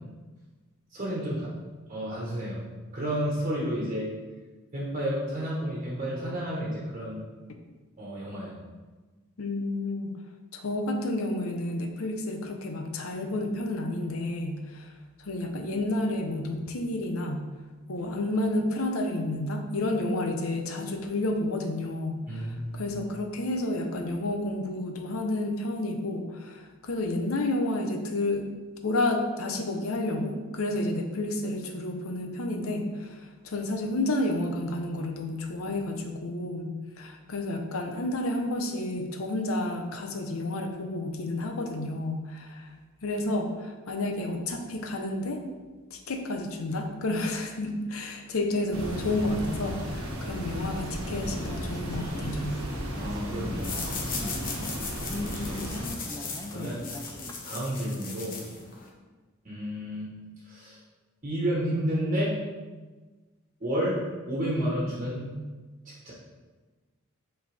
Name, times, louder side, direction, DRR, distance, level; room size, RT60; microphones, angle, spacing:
voice 1, 0.9-1.5 1.9-2.6 2.9-4.1 4.7-7.2 8.0-8.6 22.3-22.9 53.0-54.4 54.6-54.8 55.4-56.8 57.4-58.4 59.4-60.1 60.4-60.8 61.2-62.3 63.6-64.0 64.3-65.3 65.8-66.1, equal, 35° right, -6 dB, 1.3 m, -31 dB
voice 2, 9.4-10.2 10.5-14.9 15.2-17.4 17.9-28.5 28.8-42.7 43.0-45.4 45.9-52.6 56.5-56.7, left 1 dB, 80° left, 4 dB, 0.8 m, -30 dB
sound 1, 48.7-55.9, equal, 85° right, 1.3 m, -35 dB
sound 2, 50.5-57.4, left 1 dB, 15° left, 0.5 m, -40 dB
sound 3, 53.6-58.9, left 4 dB, 40° left, 1.0 m, -38 dB
7.7 x 4.4 x 3.4 m, 1.3 s
head